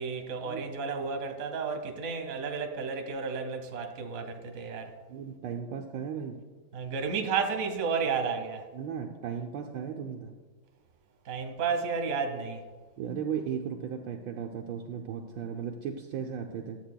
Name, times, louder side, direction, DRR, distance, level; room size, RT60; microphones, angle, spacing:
voice 1, 0.0-4.9 6.7-8.6 11.2-12.6, right 5 dB, 45° right, 1.2 m, -32 dB
voice 2, 5.1-6.4 8.7-10.3 13.0-16.8, right 7 dB, 75° right, 1.3 m, -36 dB
13.5 x 8.3 x 2.2 m
omnidirectional pair, 2.3 m